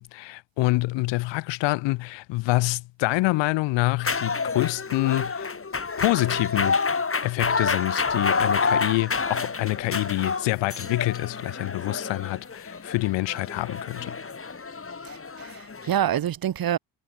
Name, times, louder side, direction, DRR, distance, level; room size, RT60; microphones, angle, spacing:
voice 1, 0.0-5.5 6.0-6.8 7.2-14.2, left 21 dB, 80° left, 5.3 m, -26 dB
sound 1, 4.0-16.0, left 4 dB, 30° left, 6.5 m, -28 dB
voice 2, 15.0-16.8, right 11 dB, 55° right, 2.0 m, -27 dB
supercardioid pair, 60°, 43 cm